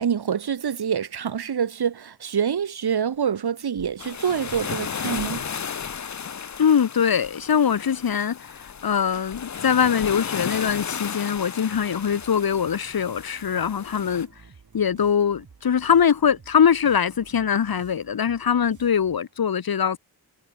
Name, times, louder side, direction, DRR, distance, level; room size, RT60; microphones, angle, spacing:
voice 1, 0.0-5.4, right 7 dB, 75° right, 3.2 m, -26 dB
sound 1, 3.7-4.0 4.5-4.8 5.1-5.4 5.8-6.2 6.5-6.7 7.2-7.5 7.9-8.2 8.6-8.9 9.3-9.6 10.0-10.3 10.7-10.9 11.3-11.6, left 7 dB, 85° left, 7.7 m, -47 dB
sound 2, 4.0-14.3, left 7 dB, 45° left, 1.1 m, -34 dB
voice 2, 6.6-14.3 14.7-20.0, left 7 dB, 65° left, 1.8 m, -22 dB
sound 3, 11.7-19.4, right 5 dB, 50° right, 5.3 m, -52 dB
wide cardioid pair, 140°, 39 cm